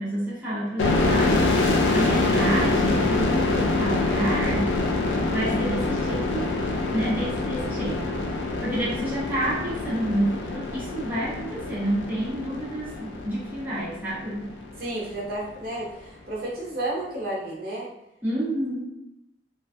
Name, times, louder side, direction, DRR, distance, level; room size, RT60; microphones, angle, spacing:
voice 1, 0.0-5.0 5.3-6.6 6.9-8.3 8.6-14.5 18.2-18.8, right 1 dB, 10° right, -9 dB, 0.6 m, -29 dB
sound 1, 0.8-14.2, left 2 dB, 85° left, 0.4 m, -25 dB
voice 2, 14.8-17.9, right 1 dB, 55° right, -5 dB, 0.7 m, -32 dB
2.4 x 2.3 x 2.3 m, 0.88 s
head